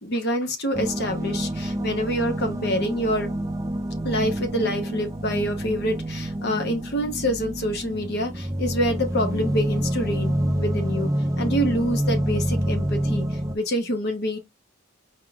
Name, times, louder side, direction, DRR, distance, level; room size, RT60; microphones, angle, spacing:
voice 1, 0.0-3.3 4.0-11.1 11.4-14.4, equal, 50° left, 0.9 m, -26 dB
sound 1, 0.7-13.5, right 1 dB, 15° right, 0.4 m, -27 dB
4.6 x 3.7 x 2.3 m
head